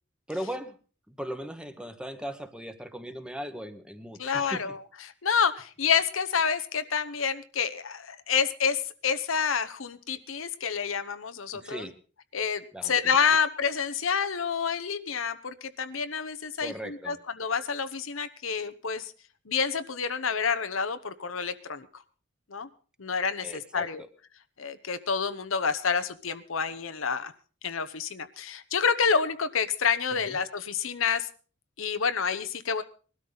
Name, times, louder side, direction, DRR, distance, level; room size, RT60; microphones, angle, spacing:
voice 1, 0.3-0.7 1.1-4.6 11.6-11.9 12.7-13.2 16.6-17.2 23.4-24.1 30.3-30.4, equal, 5° right, 8 dB, 1.2 m, -38 dB
voice 2, 4.2-4.8 5.2-11.9 12.3-19.1 19.5-21.9 22.5-22.7 23.0-24.0 24.6-27.3 27.6-31.3 31.8-32.8, left 6 dB, 80° left, 10 dB, 1.0 m, -28 dB
21.0 x 13.0 x 4.0 m, 0.39 s
head